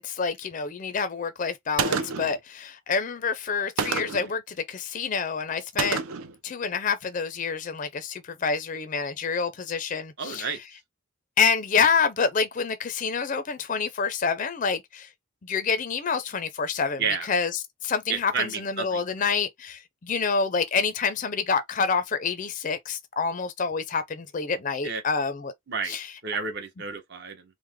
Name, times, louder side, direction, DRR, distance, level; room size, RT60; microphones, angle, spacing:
voice 1, 0.0-6.0 6.4-10.6 11.4-15.1 15.4-17.5 17.8-25.5 25.8-26.1, left 5 dB, 35° left, 0.4 m, -27 dB
Gunshot gunfire, 1.8-2.4 3.8-4.3 5.8-6.3, right 5 dB, 80° right, 0.5 m, -28 dB
voice 2, 10.2-10.6 17.0-17.3 18.1-19.0 24.8-25.0 25.7-25.9 26.2-27.4, right 5 dB, 50° right, 0.8 m, -30 dB
3.1 x 2.0 x 3.4 m
head